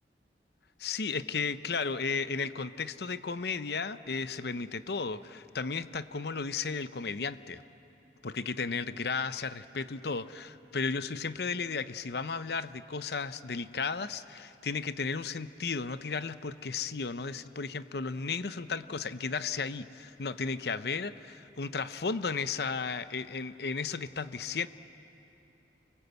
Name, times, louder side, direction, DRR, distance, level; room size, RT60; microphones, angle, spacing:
voice 1, 0.8-7.6 8.2-24.7, left 4 dB, 65° left, 13 dB, 0.7 m, -34 dB
28.5 x 21.5 x 8.2 m, 3.0 s
head